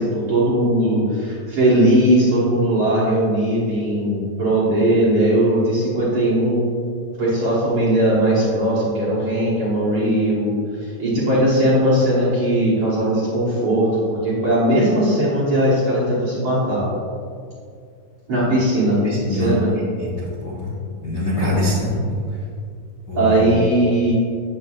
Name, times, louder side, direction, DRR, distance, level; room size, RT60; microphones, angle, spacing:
voice 1, 0.0-6.7 7.2-16.8 18.3-19.0 19.3-19.7 23.1-24.1, right 1 dB, 55° right, -10 dB, 1.7 m, -19 dB
voice 2, 19.0-19.5 20.2-20.7 21.0-22.0 23.1-23.5, left 2 dB, 60° left, -9 dB, 1.2 m, -23 dB
8.0 x 7.0 x 2.4 m, 2.3 s
omnidirectional pair, 4.1 m